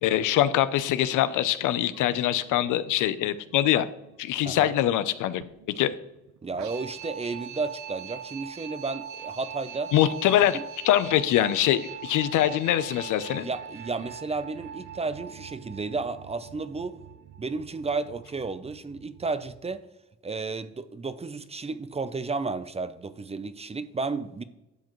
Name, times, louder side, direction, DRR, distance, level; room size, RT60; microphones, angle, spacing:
voice 1, 0.0-3.9 4.2-5.4 5.8-5.9 9.9-10.6 10.8-13.5, left 12 dB, 85° left, 14 dB, 0.6 m, -23 dB
sound 1, 1.9-19.8, right 8 dB, 70° right, 0.7 m, -43 dB
voice 2, 6.4-9.9 10.5-10.6 13.3-17.0 17.4-19.8 20.2-24.4, right 4 dB, 20° right, 13 dB, 0.6 m, -32 dB
12.0 x 7.4 x 3.1 m, 0.94 s
cardioid pair, 90°, 30 cm